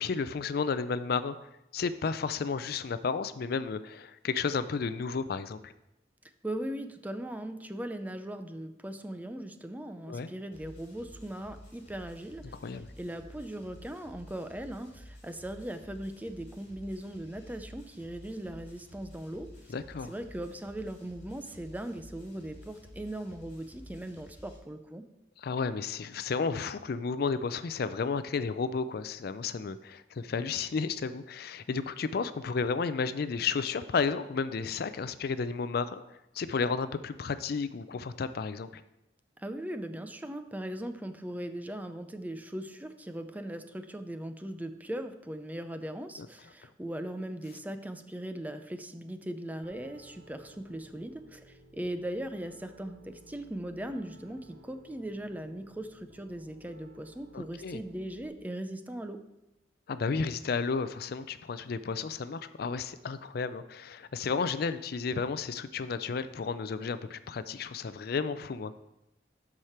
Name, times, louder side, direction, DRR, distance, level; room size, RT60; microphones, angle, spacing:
voice 1, 0.0-1.4 1.7-5.7 10.1-10.3 12.6-12.9 19.7-20.1 25.4-38.8 57.3-57.8 59.9-68.7, left 5 dB, 60° left, 13 dB, 0.4 m, -32 dB
voice 2, 6.4-12.6 13.0-19.5 20.0-25.0 39.4-59.2, right 1 dB, 10° right, 8 dB, 0.5 m, -39 dB
sound 1, 10.5-24.6, equal, 40° left, 3.0 m, -52 dB
Piano, 49.6-58.3, right 1 dB, 55° right, 1.1 m, -57 dB
12.0 x 4.9 x 4.4 m, 0.90 s
head